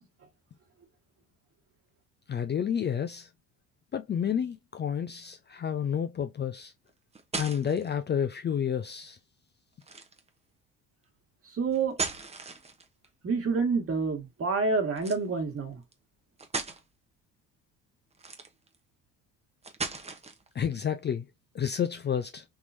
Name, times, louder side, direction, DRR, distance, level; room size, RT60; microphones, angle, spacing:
voice 1, 2.3-3.3 3.9-6.7 7.4-9.2 20.5-21.3 21.5-22.4, left 8 dB, 30° left, 0.5 m, -30 dB
sound 1, 6.9-7.9 9.8-10.3 11.7-13.0 15.0-15.2 15.9-16.0 16.4-16.8 18.1-18.7 19.6-20.5, right 4 dB, 15° right, 0.9 m, -36 dB
voice 2, 11.5-12.0 13.2-15.8, right 4 dB, 35° right, 1.7 m, -28 dB
3.6 x 3.0 x 2.6 m
supercardioid pair, 80°, 37 cm